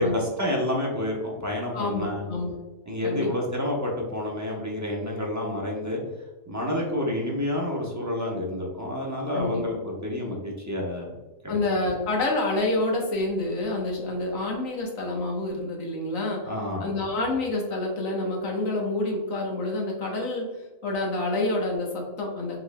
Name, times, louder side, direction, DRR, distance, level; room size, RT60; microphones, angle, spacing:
voice 1, 0.0-2.2 2.9-6.0 6.5-11.1 11.4-11.6 16.4-17.0, left 1 dB, 15° right, -2 dB, 0.8 m, -29 dB
voice 2, 1.7-2.6 3.0-3.3 9.3-9.6 11.5-16.5 16.8-20.5 20.8-22.6, left 2 dB, 80° left, -1 dB, 1.5 m, -28 dB
5.5 x 3.6 x 2.2 m, 1.2 s
omnidirectional pair, 1.4 m